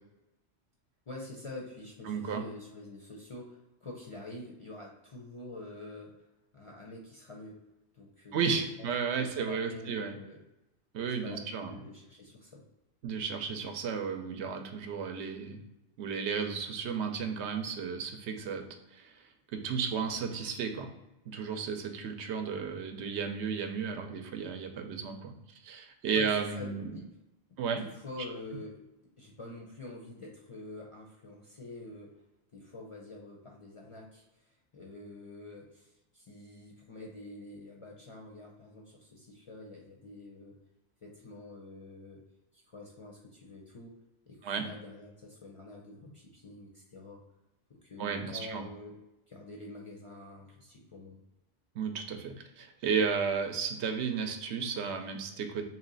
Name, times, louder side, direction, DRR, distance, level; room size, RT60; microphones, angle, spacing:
voice 1, 1.1-6.1 6.5-7.6 7.9-8.9 9.2-10.4 11.2-12.6 26.1-26.3 26.5-27.0 27.8-28.8 29.2-32.1 32.5-40.6 41.0-42.2 42.5-44.0 44.3-47.2 47.8-48.9 49.3-51.2, left 2 dB, 40° left, -2 dB, 0.5 m, -47 dB
voice 2, 2.1-2.4 8.3-10.1 10.9-11.7 13.0-15.6 16.0-18.6 18.9-19.2 19.5-20.9 21.3-25.3 25.6-27.0 27.6-27.8 44.4-44.7 48.0-48.6 51.8-55.6, right 6 dB, 80° right, 6 dB, 0.9 m, -33 dB
3.1 x 2.8 x 3.8 m, 0.97 s
omnidirectional pair, 1.2 m